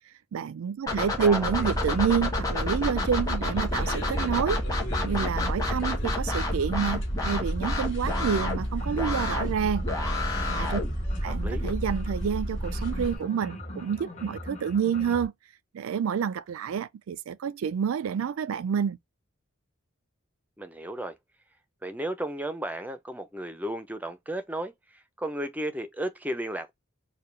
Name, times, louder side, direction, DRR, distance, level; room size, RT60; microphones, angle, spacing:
voice 1, 0.3-4.6 5.0-9.8 10.5-10.8 11.2-15.3 15.7-19.0, right 7 dB, 80° right, 0.3 m, -28 dB
sound 1, 0.9-11.7, left 2 dB, 15° left, 1.3 m, -31 dB
voice 2, 1.2-1.7 11.3-11.7 20.6-21.1 21.8-26.7, right 1 dB, 5° right, 0.4 m, -34 dB
sound 2, 1.3-15.3, left 1 dB, 35° left, 1.1 m, -45 dB
sound 3, 1.4-13.2, equal, 60° left, 2.5 m, -32 dB
4.7 x 2.2 x 3.2 m
head